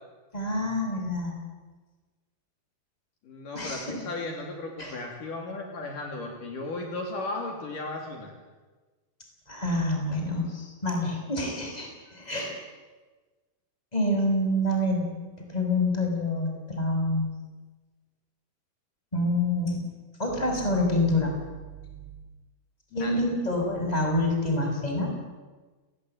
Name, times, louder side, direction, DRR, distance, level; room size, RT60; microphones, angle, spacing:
voice 1, 0.3-1.4 3.5-4.0 4.8-5.0 9.5-12.5 13.9-15.1 15.4-17.3 19.1-19.8 20.2-22.1 22.9-25.1, left 1 dB, 10° left, 2 dB, 6.0 m, -27 dB
voice 2, 3.2-8.3 22.9-23.2, left 2 dB, 60° left, 2 dB, 4.2 m, -35 dB
29.5 x 19.5 x 9.1 m, 1.3 s
omnidirectional pair, 4.5 m